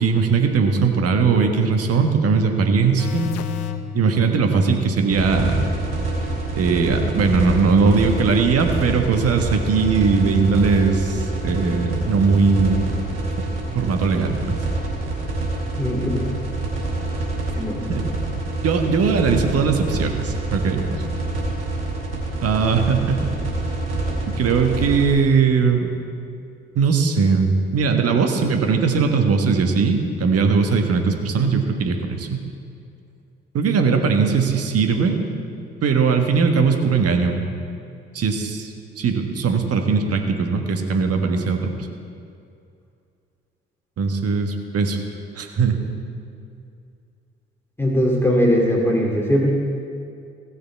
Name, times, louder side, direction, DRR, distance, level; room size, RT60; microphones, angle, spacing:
voice 1, 0.0-3.3 3.9-5.6 6.5-12.9 13.7-14.6 17.9-18.0 18.6-20.9 22.4-23.2 24.3-25.9 26.7-32.4 33.5-35.2 35.8-37.4 38.1-41.7 44.0-45.0 45.4-45.8, right 5 dB, 55° right, 5 dB, 1.5 m, -19 dB
sound 1, 3.0-3.9 10.2-10.3, left 13 dB, 55° left, 0.8 m, -29 dB
sound 2, 5.1-25.1, right 2 dB, 85° right, 2.5 m, -26 dB
voice 2, 15.8-16.3 17.5-17.9 47.8-49.5, equal, 10° left, -2 dB, 2.5 m, -20 dB
17.0 x 6.7 x 4.6 m, 2.4 s
hypercardioid pair, 45°, 30 cm